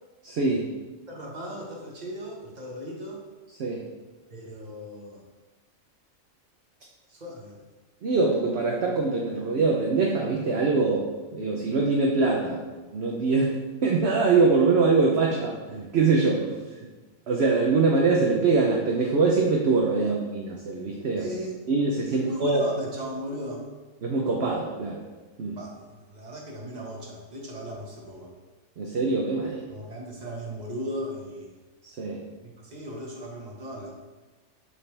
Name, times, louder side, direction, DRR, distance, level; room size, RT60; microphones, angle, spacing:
voice 1, 0.2-0.7 3.6-3.8 8.0-12.6 12.9-13.5 13.8-16.6 17.3-21.3 21.7-22.6 24.0-25.0 25.4-25.6 28.8-29.6 31.8-32.2, right 4 dB, 55° right, -1 dB, 1.0 m, -23 dB
voice 2, 1.1-3.2 4.3-5.2 7.1-7.6 20.0-20.2 21.2-21.6 22.1-23.6 25.5-28.3 29.7-31.6 32.4-33.9, equal, 35° right, -2 dB, 1.5 m, -37 dB
6.9 x 6.8 x 3.4 m, 1.2 s
omnidirectional pair, 1.4 m